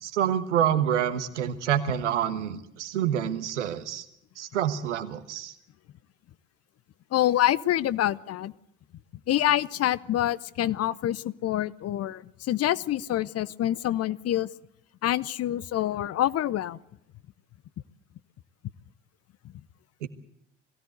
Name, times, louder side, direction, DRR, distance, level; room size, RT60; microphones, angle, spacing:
voice 1, 0.0-4.0 4.4-5.5 20.0-20.1, right 10 dB, 80° right, 10 dB, 1.4 m, -27 dB
voice 2, 7.1-8.5 9.3-14.5 15.0-16.8, left 13 dB, 45° left, 19 dB, 0.8 m, -26 dB
21.0 x 16.5 x 8.0 m, 0.79 s
figure-of-eight pair, 50°, 35 cm